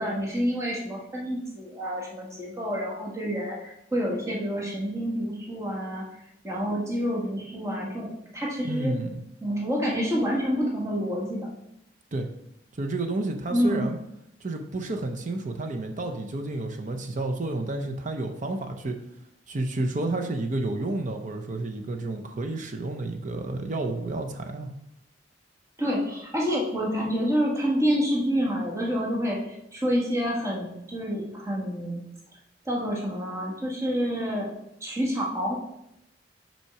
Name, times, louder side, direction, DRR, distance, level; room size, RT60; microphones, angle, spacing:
voice 1, 0.0-6.1 6.4-9.0 9.4-11.5 13.5-13.9 25.8-29.4 29.7-32.0 32.6-34.5 34.8-35.6, equal, 15° right, -3 dB, 1.4 m, -28 dB
voice 2, 8.6-9.2 12.1-12.3 12.8-14.0 14.4-19.0 19.5-24.7, right 2 dB, 45° right, 4 dB, 0.7 m, -30 dB
5.6 x 4.4 x 5.8 m, 0.81 s
head